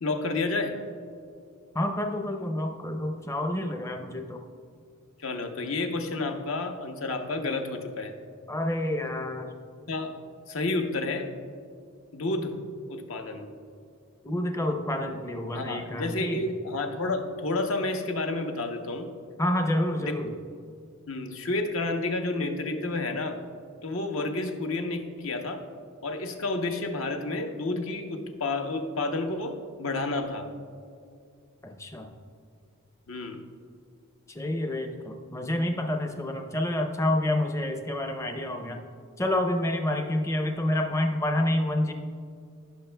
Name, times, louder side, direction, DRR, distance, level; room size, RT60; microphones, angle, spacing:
voice 1, 0.0-0.8 5.2-8.1 9.9-10.2 10.5-11.3 12.1-12.6 12.9-13.5 15.5-19.1 20.0-20.3 21.1-23.4 23.8-25.6 26.0-30.5 33.1-33.4, left 2 dB, 65° left, 5 dB, 0.8 m, -30 dB
voice 2, 1.7-4.4 8.5-9.5 14.2-16.4 19.4-20.3 31.6-32.1 34.3-38.8 39.2-41.9, left 1 dB, 15° left, 4 dB, 0.5 m, -28 dB
16.0 x 6.1 x 2.2 m, 2.3 s
head